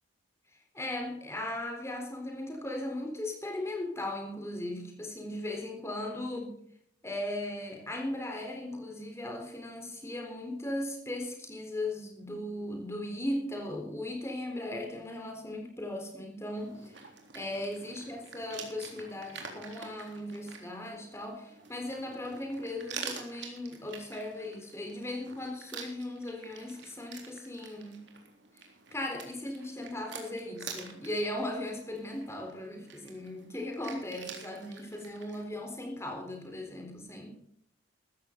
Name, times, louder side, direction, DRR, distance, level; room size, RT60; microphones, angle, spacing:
voice 1, 0.5-6.5 7.0-28.1 28.5-28.7 28.9-37.3, left 1 dB, 15° left, 2 dB, 3.8 m, -38 dB
sound 1, 16.6-35.4, right 5 dB, 65° right, 3.5 m, -47 dB
15.5 x 14.0 x 3.9 m, 0.69 s
head